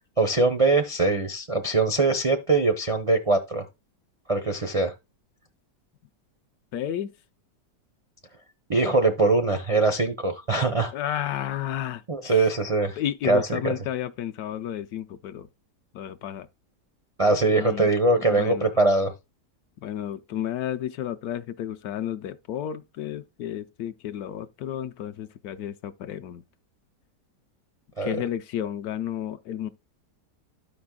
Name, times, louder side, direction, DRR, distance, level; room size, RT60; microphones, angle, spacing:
voice 1, 0.2-3.6 4.3-4.9 8.7-10.9 12.1-13.0 13.2-13.7 17.2-19.1 28.0-28.1, right 3 dB, 55° right, 0.3 m, -22 dB
voice 2, 6.7-7.1 10.9-12.4 13.0-15.5 15.9-16.5 17.5-17.9 18.2-18.7 19.8-26.4 28.0-29.7, left 11 dB, 70° left, 1.0 m, -32 dB
13.5 x 5.2 x 2.2 m
omnidirectional pair, 1.8 m